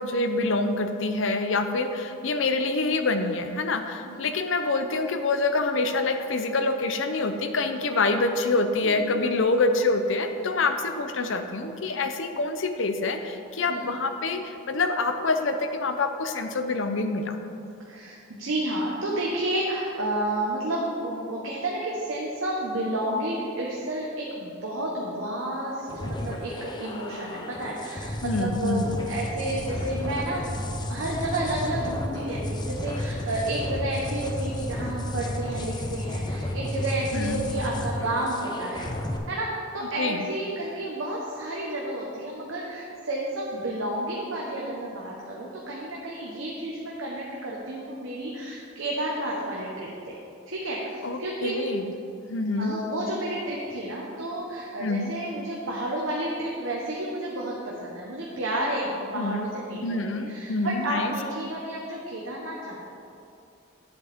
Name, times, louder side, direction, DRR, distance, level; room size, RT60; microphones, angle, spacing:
voice 1, 0.0-17.4 28.2-29.0 37.1-37.4 40.0-40.3 51.0-51.9 52.2-52.8 54.8-55.1 59.1-59.5 59.8-61.1, left 3 dB, 75° left, 7 dB, 0.6 m, -26 dB
voice 2, 17.8-38.9 39.3-50.1 50.5-51.7 52.6-62.8, right 1 dB, 85° right, -3 dB, 1.1 m, -31 dB
sound 1, 25.9-39.2, left 1 dB, 20° left, 0.6 m, -32 dB
10.5 x 8.1 x 3.6 m, 2.5 s
head